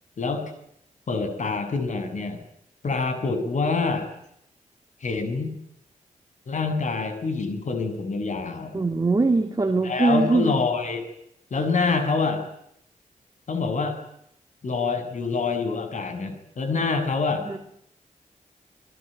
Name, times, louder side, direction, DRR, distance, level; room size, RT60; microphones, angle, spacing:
voice 1, 1.1-2.4 2.8-4.1 5.0-5.5 6.5-8.7 9.8-11.0 11.5-12.5 13.5-14.0 14.6-17.5, left 4 dB, 60° left, 9 dB, 7.4 m, -26 dB
voice 2, 8.7-10.6 17.4-17.6, right 3 dB, 25° right, 4 dB, 2.9 m, -22 dB
29.5 x 21.0 x 9.0 m, 0.75 s
cardioid pair, 90°, 14 cm